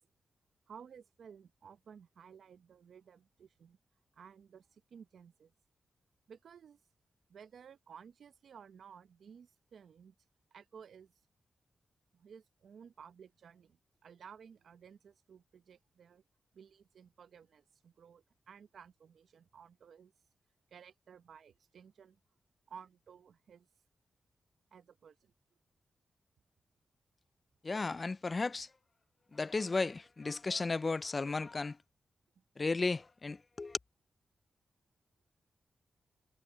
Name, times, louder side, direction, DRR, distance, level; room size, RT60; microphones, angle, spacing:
voice 1, 0.7-3.8 4.1-5.5 6.3-6.8 7.3-10.1 10.5-11.1 12.1-16.2 16.5-20.1 20.7-22.2 22.7-23.7 24.7-25.3 32.4-32.5, right 7 dB, 75° right, 0.9 m, -56 dB
voice 2, 27.6-28.7 29.3-31.8 32.6-33.8, left 3 dB, 45° left, 0.3 m, -34 dB
supercardioid pair, 45°, 0 cm